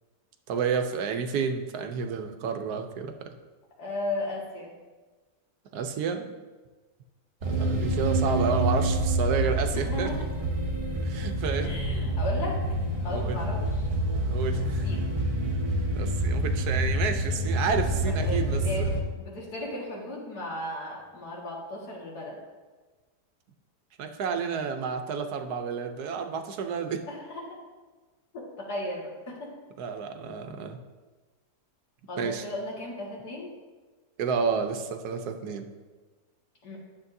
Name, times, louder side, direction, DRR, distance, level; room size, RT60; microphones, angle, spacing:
voice 1, 0.5-3.3 5.7-6.3 7.4-10.1 11.0-11.7 13.1-13.4 14.2-14.9 16.0-18.9 24.0-27.0 29.8-30.8 32.2-32.4 34.2-35.7, right 6 dB, 80° right, 6 dB, 1.2 m, -30 dB
voice 2, 3.8-4.7 9.7-10.2 11.6-12.6 13.0-13.9 14.6-15.1 17.9-22.4 27.1-27.6 28.3-29.5 32.1-33.5 36.6-36.8, left 1 dB, 80° left, -3 dB, 2.4 m, -36 dB
sound 1, 7.4-19.0, right 1 dB, 60° right, 1.9 m, -27 dB
11.5 x 7.1 x 2.7 m, 1.3 s
omnidirectional pair, 1.7 m